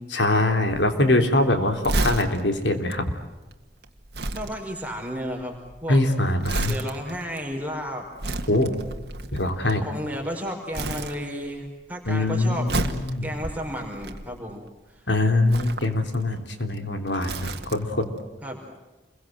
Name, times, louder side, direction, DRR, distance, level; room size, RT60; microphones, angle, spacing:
voice 1, 0.1-3.0 5.9-6.7 8.5-8.7 9.3-9.9 12.1-13.3 15.1-18.1, left 2 dB, 80° left, 6 dB, 3.4 m, -23 dB
Crumpling crinkling, 0.7-10.3 10.7-11.7 12.0-14.7 15.4-18.0 18.3-18.5, right 2 dB, 60° right, 1.9 m, -32 dB
voice 2, 4.3-5.6 5.8-6.0 6.6-8.1 9.8-12.7 13.2-14.6 18.4-18.6, equal, 10° right, 0 dB, 5.1 m, -32 dB
28.5 x 22.5 x 8.0 m, 1.1 s
head